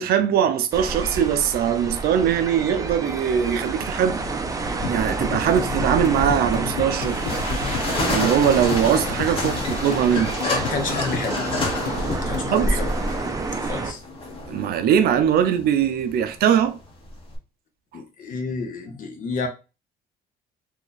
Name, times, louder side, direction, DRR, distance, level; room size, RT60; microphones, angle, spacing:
voice 1, 0.0-4.2 4.9-7.2 8.1-10.3 12.5-12.7 14.5-16.8, right 9 dB, 65° right, 0.5 m, -21 dB
sound 1, 0.7-13.9, right 3 dB, 20° right, 0.5 m, -29 dB
sound 2, 4.8-12.6, left 8 dB, 75° left, 0.7 m, -32 dB
sound 3, 6.9-17.4, left 1 dB, 35° left, 1.1 m, -29 dB
voice 2, 10.5-11.4 12.2-12.9 13.6-14.0 17.9-19.5, left 4 dB, 55° left, 0.9 m, -30 dB
2.9 x 2.4 x 3.9 m
cardioid pair, 110°, 17 cm